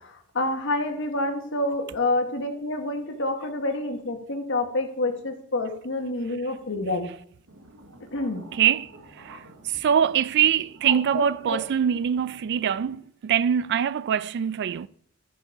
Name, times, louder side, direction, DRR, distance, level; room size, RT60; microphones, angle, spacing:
voice 1, 0.3-7.1 8.1-8.4, left 2 dB, 60° left, 1.5 m, -27 dB
Bird, 7.5-13.0, right 1 dB, 80° right, 1.2 m, -39 dB
voice 2, 8.5-8.9 9.2-14.9, right 8 dB, 50° right, 0.3 m, -24 dB
12.5 x 5.3 x 4.9 m
head